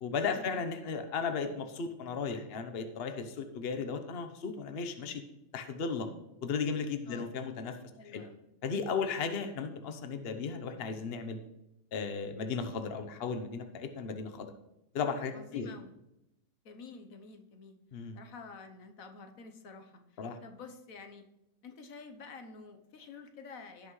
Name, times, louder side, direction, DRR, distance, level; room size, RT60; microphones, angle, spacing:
voice 1, 0.0-5.2 5.5-6.1 6.4-7.7 8.1-8.2 8.6-11.4 11.9-14.5 14.9-15.7 17.9-18.2 20.2-20.4, left 5 dB, 50° left, 7 dB, 1.1 m, -35 dB
voice 2, 8.0-8.4 15.3-15.9 16.6-17.8 18.1-21.2 21.6-23.9, left 4 dB, 85° left, 6 dB, 1.4 m, -49 dB
17.0 x 5.7 x 3.2 m, 0.89 s
omnidirectional pair, 1.4 m